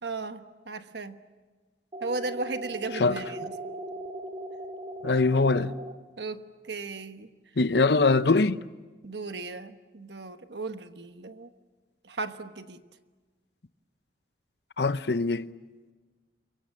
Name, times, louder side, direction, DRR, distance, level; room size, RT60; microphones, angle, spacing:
voice 1, 0.0-1.2 2.0-3.5 6.2-7.3 9.0-11.5 12.0-12.8, right 3 dB, 70° right, 1.2 m, -36 dB
sound 1, 1.9-5.9, right 1 dB, 30° right, 2.4 m, -39 dB
voice 2, 5.0-5.7 7.6-8.6 14.8-15.5, left 3 dB, 65° left, 0.8 m, -22 dB
28.5 x 23.5 x 7.7 m
head